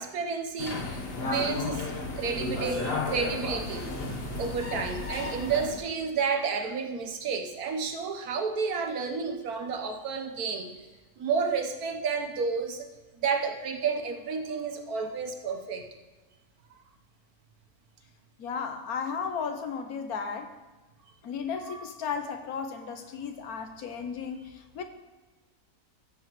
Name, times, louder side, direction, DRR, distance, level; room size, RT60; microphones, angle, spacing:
voice 1, 0.0-1.9 2.2-10.7 11.2-12.9 13.2-15.9 21.7-21.8, right 5 dB, 70° right, 4 dB, 1.5 m, -31 dB
sound 1, 0.6-5.8, left 2 dB, 40° left, 1.3 m, -33 dB
voice 2, 18.4-20.5 21.2-24.8, left 6 dB, 75° left, 7 dB, 1.3 m, -34 dB
15.0 x 7.8 x 3.1 m, 1.3 s
omnidirectional pair, 1.6 m